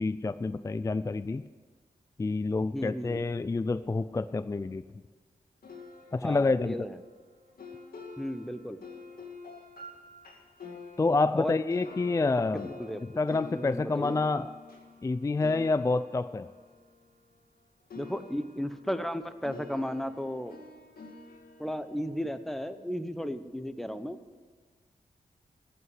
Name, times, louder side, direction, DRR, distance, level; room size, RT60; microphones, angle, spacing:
voice 1, 0.0-1.4 2.2-4.8 6.1-6.8 11.0-12.7 13.0-14.5 15.0-16.5, left 3 dB, 20° left, 13 dB, 0.3 m, -28 dB
voice 2, 2.7-3.2 6.2-7.0 8.2-8.8 11.3-11.5 12.8-13.0 13.5-14.2 18.0-20.6 21.6-24.2, equal, ahead, 10 dB, 0.8 m, -34 dB
sound 1, 5.6-17.6 17.9-23.1, left 4 dB, 85° left, 2.1 m, -48 dB
15.0 x 5.8 x 9.5 m, 1.4 s
cardioid pair, 80°, 15 cm